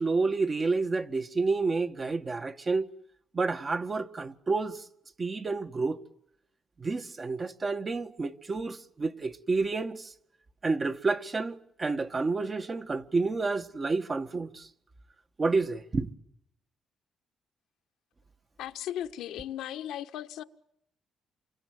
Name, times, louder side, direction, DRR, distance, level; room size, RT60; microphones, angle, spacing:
voice 1, 0.0-2.9 3.3-4.8 5.2-6.0 6.8-10.1 10.6-14.7 15.4-16.1, right 3 dB, 30° right, 1.6 m, -29 dB
voice 2, 18.6-20.4, left 11 dB, 85° left, 1.3 m, -36 dB
29.0 x 24.5 x 7.9 m
cardioid pair, 90°, 0 cm